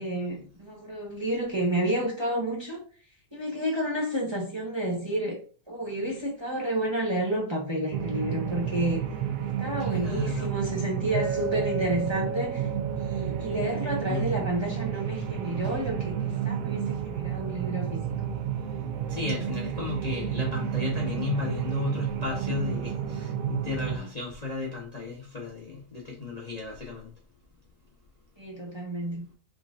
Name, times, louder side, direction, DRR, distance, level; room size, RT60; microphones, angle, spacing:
voice 1, 0.0-2.8 3.3-5.4 5.7-9.0 9.4-12.7 13.0-18.0 23.8-24.1 28.4-29.2, right 1 dB, 20° right, 1.1 m, -30 dB
sound 1, 7.9-24.0, right 9 dB, 65° right, 0.9 m, -31 dB
voice 2, 9.8-10.5 14.1-14.2 19.1-27.1, left 4 dB, 30° left, 0.9 m, -34 dB
Chink clink, 11.1-15.5, right 6 dB, 40° right, 2.2 m, -36 dB
4.8 x 3.8 x 2.5 m
omnidirectional pair, 1.7 m